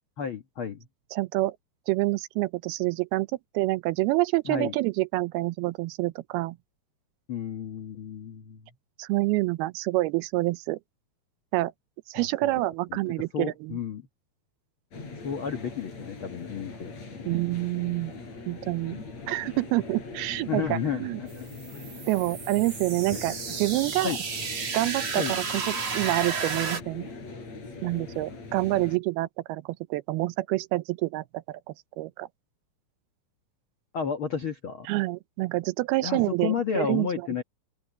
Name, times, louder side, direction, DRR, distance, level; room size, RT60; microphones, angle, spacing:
voice 1, 0.2-0.9 4.4-4.7 7.3-8.6 12.1-12.6 12.9-13.0 13.3-14.1 15.2-17.4 19.2-19.3 20.5-21.8 24.0-24.2 25.2-25.4 33.9-34.9 36.0-37.4, left 7 dB, 85° left, 1.1 m, -32 dB
voice 2, 1.1-1.6 1.9-3.3 3.5-6.6 9.0-10.8 11.5-11.7 12.1-13.8 17.3-18.1 18.5-19.0 19.3-21.2 22.1-24.2 24.7-25.7 25.9-27.1 27.8-31.6 32.0-32.3 34.9-37.1, right 19 dB, 80° right, 2.6 m, -27 dB
sound 1, 14.9-29.0, left 3 dB, 45° left, 6.8 m, -42 dB
sound 2, 21.3-26.8, right 5 dB, 40° right, 3.8 m, -33 dB
open air
omnidirectional pair, 4.5 m